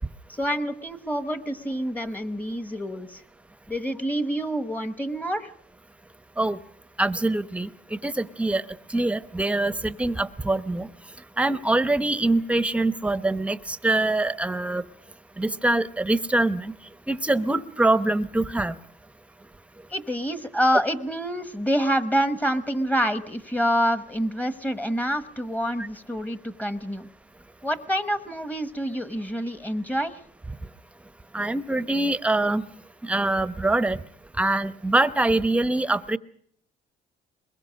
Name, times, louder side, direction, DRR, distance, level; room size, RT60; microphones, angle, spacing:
voice 1, 0.3-3.2 3.7-5.5 19.9-27.1 27.6-30.2, equal, 10° left, 12 dB, 1.1 m, -27 dB
voice 2, 7.0-8.6 8.9-10.9 11.4-14.8 15.4-16.7 17.1-18.8 31.3-32.6 33.0-34.0 34.4-36.2, right 2 dB, 5° right, 14 dB, 0.8 m, -24 dB
22.5 x 21.0 x 6.4 m, 0.65 s
cardioid pair, 110°, 17 cm